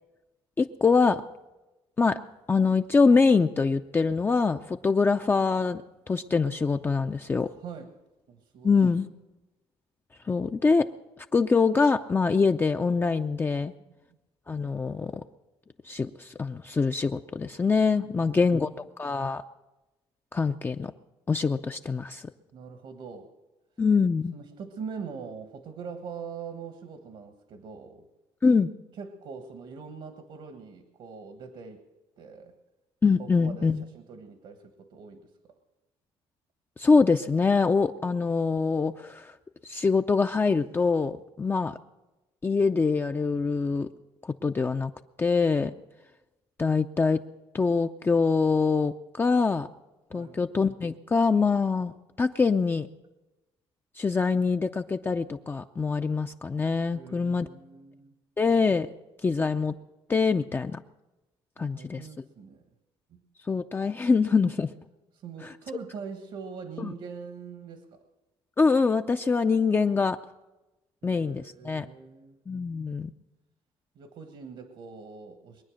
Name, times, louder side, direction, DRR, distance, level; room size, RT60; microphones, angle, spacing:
voice 1, 0.6-1.2 2.0-2.2 2.5-7.5 8.6-9.1 10.2-10.9 11.3-13.7 14.5-15.2 15.8-18.7 19.0-19.4 20.3-20.9 21.3-22.3 23.8-24.3 28.4-28.7 33.0-33.8 36.8-39.4 39.6-41.8 42.4-43.9 44.2-44.9 45.2-45.8 46.6-47.2 47.5-49.7 50.1-51.9 52.2-52.9 54.0-57.5 58.4-58.9 59.2-59.7 60.1-60.8 61.6-62.0 63.5-64.7 66.8-66.9 68.6-70.2 71.0-71.9 72.5-73.1, left 4 dB, 20° left, 6 dB, 0.5 m, -24 dB
voice 2, 7.6-7.9 8.3-8.8 18.0-18.7 22.5-23.3 24.3-28.1 29.0-31.8 32.2-32.5 33.2-35.3 50.1-50.4 56.9-58.2 61.6-62.6 63.1-63.2 65.1-68.0 71.0-72.4 73.9-75.6, right 5 dB, 70° right, 7 dB, 1.4 m, -42 dB
22.5 x 9.5 x 6.4 m, 1.1 s
cardioid pair, 100°, 10 cm